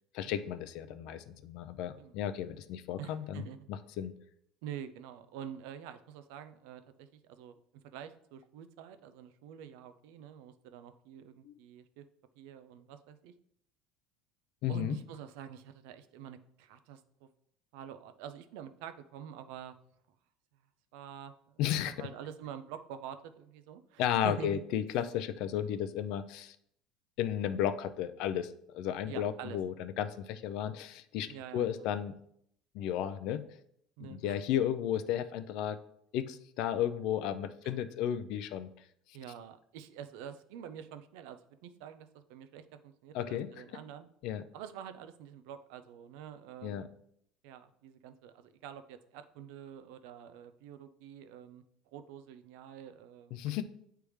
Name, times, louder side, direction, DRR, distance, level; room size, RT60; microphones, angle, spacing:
voice 1, 0.1-4.1 11.4-11.5 14.6-15.0 21.6-22.1 24.0-26.6 27.2-32.2 32.7-33.4 34.0-35.8 36.1-38.7 43.1-43.5 44.2-44.4 46.6-46.9 53.3-53.6, left 10 dB, 55° left, 11 dB, 0.4 m, -34 dB
voice 2, 3.0-3.6 4.6-7.5 7.8-12.0 12.4-13.3 14.7-17.3 17.7-19.8 20.9-24.6 29.1-29.6 31.3-31.9 34.0-34.4 37.6-37.7 39.1-44.1 44.5-46.9 47.4-51.6 51.9-53.6, right 9 dB, 75° right, 10 dB, 0.5 m, -47 dB
9.8 x 3.4 x 3.1 m, 0.70 s
cardioid pair, 170°, 0 cm